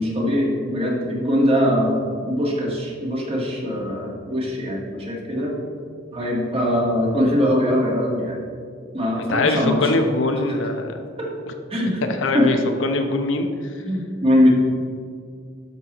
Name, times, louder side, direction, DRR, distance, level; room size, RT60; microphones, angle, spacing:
voice 1, 0.0-1.9 2.2-5.5 6.1-8.4 8.9-9.9 10.5-10.6 11.2-11.3 11.7-12.0 12.3-12.5 13.8-14.5, equal, 30° right, -3 dB, 1.7 m, -21 dB
voice 2, 9.2-11.0 12.1-13.8, left 2 dB, 80° left, 5 dB, 0.8 m, -23 dB
12.0 x 5.6 x 3.0 m, 2.2 s
head